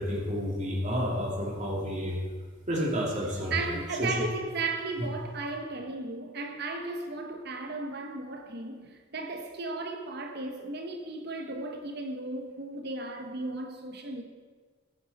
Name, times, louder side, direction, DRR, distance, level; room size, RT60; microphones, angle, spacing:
voice 1, 0.0-2.2 2.7-3.7 4.0-4.2 5.0-5.1, equal, 40° right, 2.6 m, -30 dB
voice 2, 3.5-14.2, right 3 dB, 55° right, 1.1 m, -35 dB
15.0 x 10.5 x 4.2 m
head